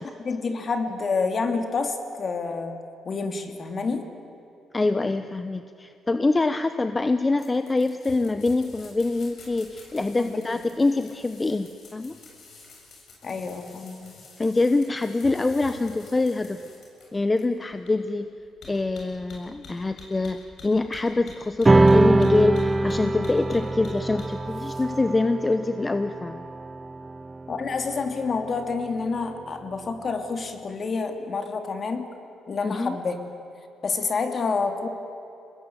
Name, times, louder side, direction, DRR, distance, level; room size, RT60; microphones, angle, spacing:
voice 1, 0.2-2.8 3.0-4.0 10.2-10.4 13.2-14.1 27.5-32.1 32.5-33.2 33.8-34.9, left 4 dB, 45° left, 6 dB, 2.7 m, -28 dB
voice 2, 4.7-12.1 14.4-16.6 17.1-18.3 18.7-26.5 32.6-33.0, left 3 dB, 20° left, 10 dB, 0.9 m, -25 dB
sound 1, 7.4-24.8, left 3 dB, 60° left, 7.4 m, -47 dB
sound 2, 21.6-28.4, right 2 dB, 20° right, 0.5 m, -23 dB
24.5 x 20.0 x 9.4 m, 2.8 s
cardioid pair, 90°, 0 cm